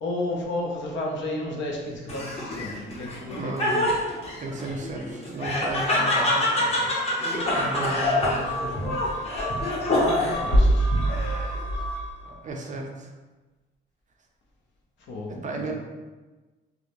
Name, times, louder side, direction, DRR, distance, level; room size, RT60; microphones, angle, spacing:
voice 1, 0.0-3.9 10.0-10.9 15.1-15.7, left 1 dB, 70° left, -1 dB, 0.6 m, -32 dB
Laughter, 2.1-10.5 10.9-11.6, left 1 dB, 30° left, 0.7 m, -26 dB
voice 2, 3.4-4.0 4.4-6.9 7.5-9.2 12.2-13.1 15.3-15.7, right 2 dB, 40° right, 1 dB, 0.4 m, -34 dB
sound 1, 7.5-12.2, right 1 dB, 90° left, 1.1 m, -26 dB
2.3 x 2.0 x 2.9 m, 1.2 s
cardioid pair, 90°, 20 cm